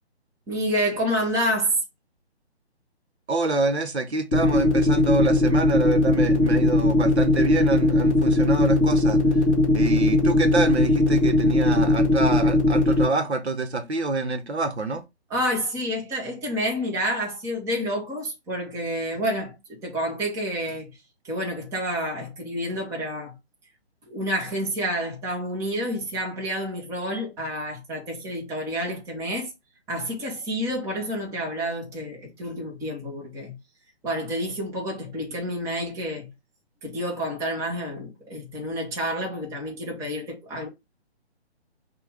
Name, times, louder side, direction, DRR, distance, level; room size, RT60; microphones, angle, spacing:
voice 1, 0.5-1.8 15.3-20.9 21.2-23.3 24.1-29.5 29.9-33.6 34.0-36.3 36.8-40.7, equal, 10° right, 1.0 m, -29 dB
voice 2, 3.3-9.4 9.7-15.0, right 3 dB, 75° right, 1.1 m, -26 dB
sound 1, 4.3-13.0, left 1 dB, 10° left, 0.5 m, -19 dB
5.7 x 2.5 x 3.4 m
figure-of-eight pair, 140°, 33 cm